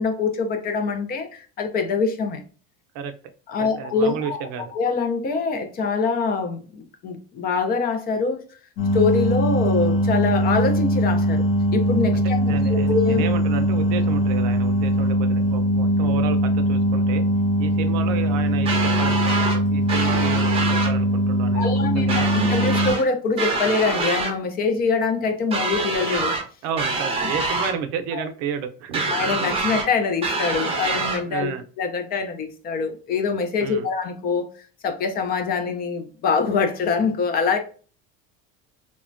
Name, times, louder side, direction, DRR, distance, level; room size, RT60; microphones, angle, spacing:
voice 1, 0.0-2.4 3.5-4.4 4.7-8.4 8.9-11.4 11.7-13.2 21.5-26.4 28.1-28.2 29.1-37.6, left 4 dB, 35° left, 0.4 m, -24 dB
voice 2, 3.6-4.6 12.4-17.2 17.6-22.3 26.6-29.0 31.3-31.6 33.6-33.9, right 7 dB, 70° right, 0.6 m, -31 dB
sound 1, 8.8-22.9, equal, 75° left, 0.8 m, -21 dB
sound 2, 18.7-19.6 19.9-20.9 22.1-23.0 23.4-24.3 25.5-26.4 26.8-27.8 28.9-29.9 30.2-31.2, right 3 dB, 20° right, 0.6 m, -25 dB
3.2 x 2.1 x 2.5 m
cardioid pair, 150°, 29 cm